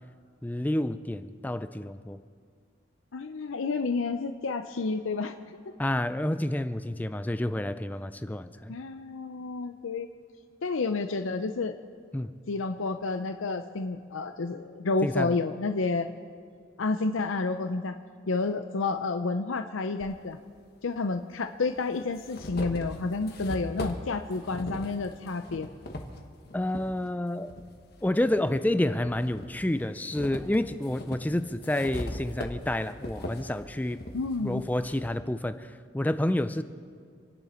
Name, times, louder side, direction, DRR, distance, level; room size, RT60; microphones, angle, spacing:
voice 1, 0.4-2.2 5.8-8.8 12.1-12.3 15.0-15.4 26.5-27.5 28.0-34.0 34.4-36.6, left 1 dB, 10° left, 11 dB, 0.4 m, -29 dB
voice 2, 3.1-5.3 8.7-10.1 10.6-11.7 12.5-16.1 16.8-18.0 18.3-20.4 20.8-25.7 34.1-34.6, left 3 dB, 85° left, 8 dB, 0.6 m, -30 dB
sound 1, 20.0-20.1 21.2-21.3 21.8-26.9 27.4-28.6 29.0-35.2, left 1 dB, 50° left, 1.4 m, -40 dB
27.0 x 11.0 x 4.4 m, 2.2 s
head